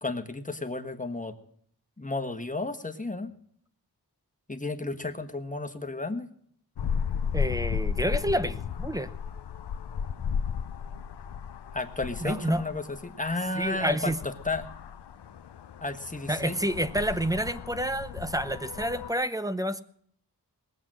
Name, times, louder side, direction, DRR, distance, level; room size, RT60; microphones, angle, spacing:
voice 1, 0.0-1.4 2.0-3.3 4.5-6.3 11.7-14.7 15.8-16.6, left 2 dB, 20° left, 8 dB, 1.4 m, -33 dB
sound 1, 6.8-19.1, left 7 dB, 75° left, 0.7 m, -34 dB
voice 2, 7.3-9.1 12.2-12.6 13.6-14.2 16.3-19.8, equal, 10° right, 12 dB, 0.8 m, -29 dB
19.5 x 8.0 x 7.6 m, 0.62 s
wide cardioid pair, 85°, 40 cm